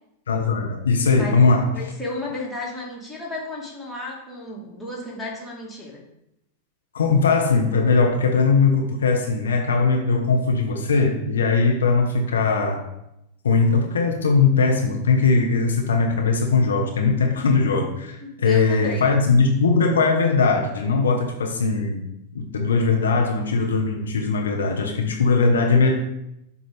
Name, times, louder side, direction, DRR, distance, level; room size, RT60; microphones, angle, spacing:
voice 1, 0.3-1.7 6.9-12.9 13.4-22.0 22.3-25.9, left 4 dB, 70° left, 1 dB, 0.7 m, -20 dB
voice 2, 1.6-6.0 18.2-19.1, left 2 dB, 5° left, -5 dB, 1.8 m, -33 dB
7.0 x 2.7 x 5.0 m, 0.84 s
figure-of-eight pair, 90°, 0 cm